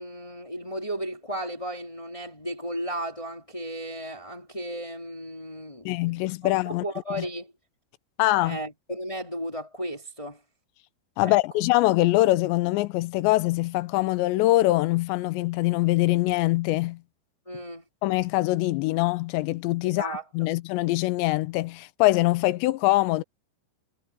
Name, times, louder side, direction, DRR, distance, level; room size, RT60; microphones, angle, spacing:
voice 1, 0.0-5.9 6.4-7.5 8.4-10.4 11.2-11.4 17.4-17.8 19.8-20.5, right 1 dB, 25° left, 0.6 m, -35 dB
voice 2, 5.9-6.8 7.2-7.3 8.2-8.6 11.2-17.0 18.0-23.2, left 18 dB, 85° left, 2.9 m, -23 dB
omnidirectional pair, 5.2 m